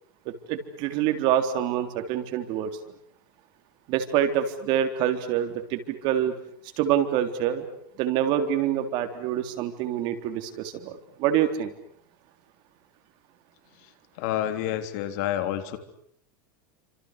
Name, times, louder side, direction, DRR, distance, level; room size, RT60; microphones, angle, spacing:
voice 1, 0.3-2.7 3.9-6.3 6.8-7.7 8.0-11.7, right 10 dB, 45° right, 7 dB, 3.6 m, -26 dB
voice 2, 14.2-15.8, left 11 dB, 60° left, 9 dB, 3.4 m, -28 dB
30.0 x 26.5 x 6.7 m, 0.65 s
supercardioid pair, 145°, 11 cm